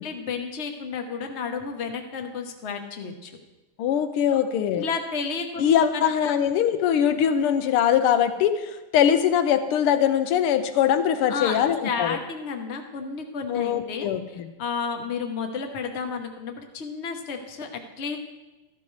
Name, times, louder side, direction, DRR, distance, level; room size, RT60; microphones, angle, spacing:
voice 1, 0.0-3.3 4.3-4.4 4.7-6.3 11.3-18.2, left 5 dB, 45° left, 5 dB, 0.9 m, -32 dB
voice 2, 3.8-4.9 5.6-12.2 13.5-14.5, left 9 dB, 85° left, 9 dB, 1.7 m, -22 dB
13.5 x 11.5 x 3.2 m, 1.1 s
omnidirectional pair, 2.4 m